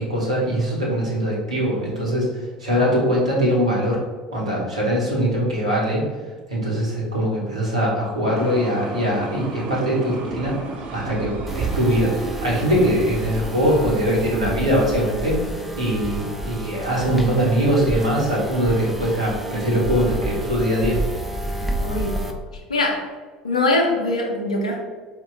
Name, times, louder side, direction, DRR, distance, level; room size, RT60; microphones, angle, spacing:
voice 1, 0.0-4.0 4.3-6.0 6.5-10.6 10.9-12.1 12.4-21.0, equal, 80° right, -4 dB, 1.2 m, -22 dB
sound 1, 8.4-14.4, right 3 dB, 45° right, 0.7 m, -32 dB
sound 2, 11.5-22.3, right 1 dB, 5° right, 0.5 m, -30 dB
voice 2, 21.8-22.2 22.7-23.1 23.4-24.8, left 2 dB, 80° left, 1 dB, 0.7 m, -22 dB
4.5 x 2.8 x 3.8 m, 1.4 s
figure-of-eight pair, 65°, 4 cm